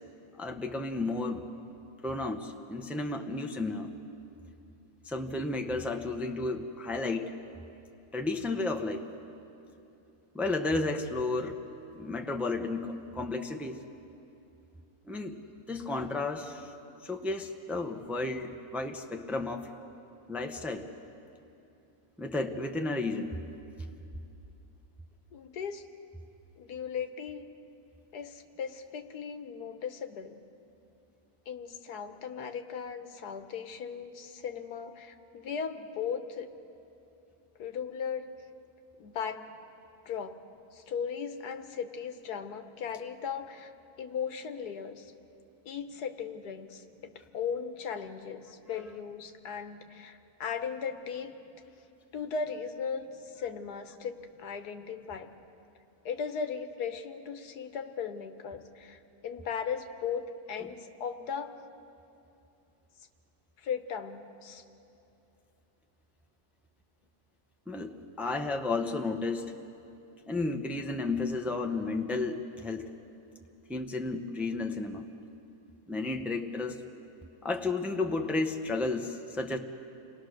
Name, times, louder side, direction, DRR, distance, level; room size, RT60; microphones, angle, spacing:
voice 1, 0.3-1.4 2.0-3.9 5.0-7.3 8.1-9.0 10.3-11.6 11.9-13.8 15.1-15.4 15.7-16.7 17.0-19.7 20.3-20.9 22.2-23.4 67.7-69.6 70.3-72.9 73.7-75.1 75.9-76.8 77.4-79.6, left 3 dB, ahead, 4 dB, 0.7 m, -32 dB
voice 2, 25.3-25.8 26.6-27.5 28.1-30.4 31.5-36.5 37.6-38.3 39.0-39.5 40.0-40.4 40.7-43.7 44.0-45.1 45.6-51.3 52.1-53.1 53.3-55.3 56.0-61.5 63.6-64.6, left 6 dB, 90° left, 8 dB, 1.6 m, -37 dB
28.5 x 20.0 x 6.5 m, 2.8 s
omnidirectional pair, 1.6 m